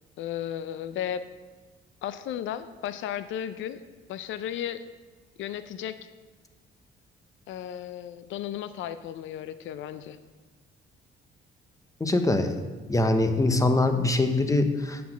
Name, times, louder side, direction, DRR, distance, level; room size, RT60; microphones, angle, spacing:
voice 1, 0.2-1.2 2.0-3.8 4.1-4.8 5.4-6.0 7.5-10.2, left 10 dB, 80° left, 12 dB, 0.5 m, -34 dB
voice 2, 12.0-12.6 12.9-15.0, left 2 dB, 15° left, 7 dB, 0.9 m, -23 dB
8.3 x 5.9 x 6.1 m, 1.4 s
cardioid pair, 90°, 20 cm